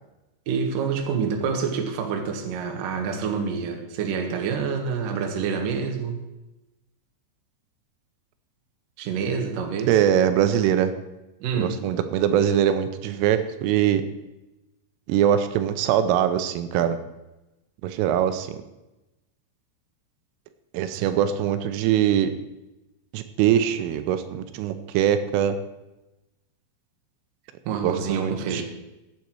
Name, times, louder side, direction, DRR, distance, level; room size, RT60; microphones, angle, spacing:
voice 1, 0.5-6.2 9.0-10.0 11.4-11.8 20.9-21.1 27.7-28.6, right 6 dB, 60° right, 3 dB, 2.5 m, -27 dB
voice 2, 9.9-10.9 11.6-14.0 15.1-17.0 17.8-18.5 20.7-22.3 23.1-25.6 27.8-28.6, right 10 dB, 90° right, 10 dB, 3.4 m, -22 dB
15.0 x 9.4 x 4.6 m, 0.99 s
omnidirectional pair, 5.7 m